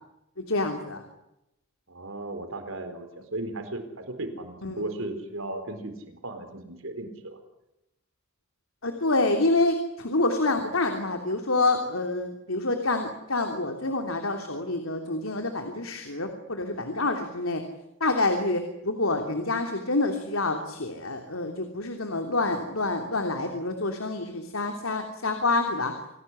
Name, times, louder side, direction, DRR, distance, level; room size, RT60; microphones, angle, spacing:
voice 1, 0.4-1.0 4.6-4.8 8.8-17.6 18.0-25.9, left 2 dB, 85° left, 5 dB, 3.2 m, -27 dB
voice 2, 1.9-7.4, right 2 dB, 75° right, 8 dB, 4.4 m, -36 dB
27.5 x 18.0 x 9.8 m, 0.87 s
head